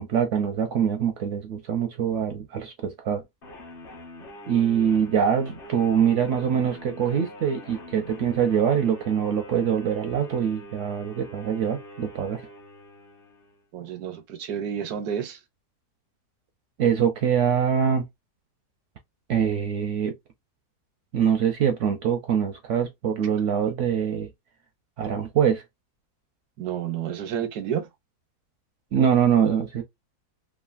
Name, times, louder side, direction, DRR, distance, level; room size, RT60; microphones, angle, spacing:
voice 1, 0.0-3.2 4.5-12.4 16.8-18.0 19.3-20.1 21.1-24.3 25.0-25.6 28.9-29.8, right 8 dB, 70° right, 0.7 m, -24 dB
sound 1, 3.4-13.7, equal, 45° left, 0.9 m, -44 dB
voice 2, 13.7-15.4 26.6-27.9, right 8 dB, 85° right, 1.2 m, -30 dB
3.1 x 2.4 x 2.4 m
omnidirectional pair, 1.6 m